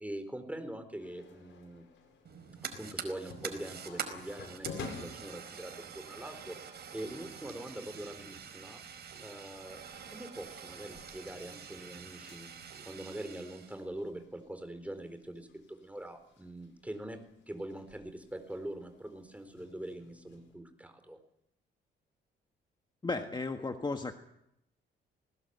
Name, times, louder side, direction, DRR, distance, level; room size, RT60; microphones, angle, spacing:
voice 1, 0.0-1.9 2.6-8.8 9.2-9.8 10.1-12.5 12.8-17.2 17.5-21.2, right 1 dB, 5° right, 8 dB, 4.2 m, -43 dB
sound 1, 1.0-20.5, left 5 dB, 70° left, 7.5 m, -53 dB
Fire, 2.2-13.8, right 7 dB, 55° right, 4.7 m, -46 dB
voice 2, 23.0-24.1, left 3 dB, 20° left, 6 dB, 1.6 m, -34 dB
20.0 x 19.0 x 8.2 m, 0.79 s
cardioid pair, 90°, 20 cm